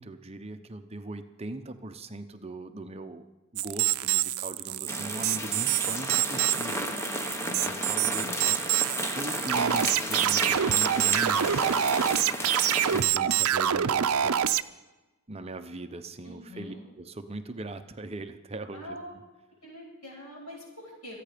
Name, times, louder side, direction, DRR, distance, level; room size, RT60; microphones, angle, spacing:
voice 1, 0.0-3.2 3.5-6.9 7.6-8.6 9.1-12.2 12.9-14.4 15.3-19.0, right 2 dB, 30° right, 8 dB, 0.8 m, -40 dB
sound 1, 3.6-14.6, right 10 dB, 75° right, 0.5 m, -26 dB
sound 2, 4.9-13.0, equal, 10° left, 1.1 m, -33 dB
voice 2, 6.5-8.3 16.2-16.8 18.7-19.1 19.6-21.2, left 1 dB, 85° left, -2 dB, 7.5 m, -44 dB
26.0 x 9.3 x 5.1 m, 1.1 s
head